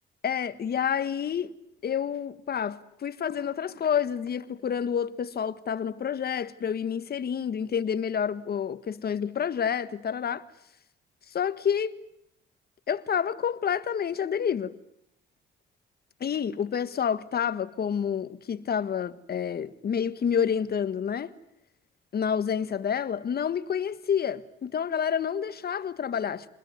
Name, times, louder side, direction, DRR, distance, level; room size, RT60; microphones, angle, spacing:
voice 1, 0.2-1.5 1.8-10.4 11.3-12.0 12.9-14.7 16.2-21.3 22.1-26.5, left 8 dB, 50° left, 1.7 m, -29 dB
27.0 x 21.0 x 9.6 m
cardioid pair, 90°, 20 cm